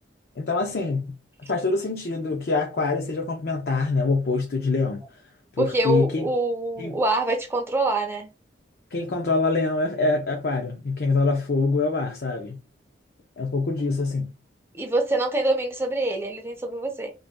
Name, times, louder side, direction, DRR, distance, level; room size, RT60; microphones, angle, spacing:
voice 1, 0.4-1.1 1.5-5.0 5.6-6.3 6.8-7.0 8.9-12.6 13.4-14.3, left 3 dB, 55° left, 0.6 m, -25 dB
voice 2, 5.6-8.3 14.7-17.1, right 2 dB, 15° right, 0.5 m, -25 dB
2.9 x 2.7 x 3.5 m
head